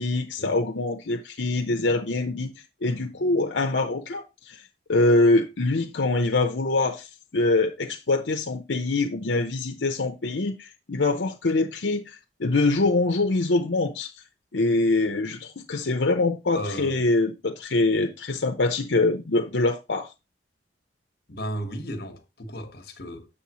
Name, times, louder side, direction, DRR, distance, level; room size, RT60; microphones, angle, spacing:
voice 1, 0.0-4.6 4.9-7.1 7.3-14.1 14.5-20.1, left 2 dB, 85° left, 0.8 m, -24 dB
voice 2, 16.5-17.0 21.3-23.4, equal, 60° left, 1.2 m, -35 dB
7.1 x 6.9 x 3.0 m
head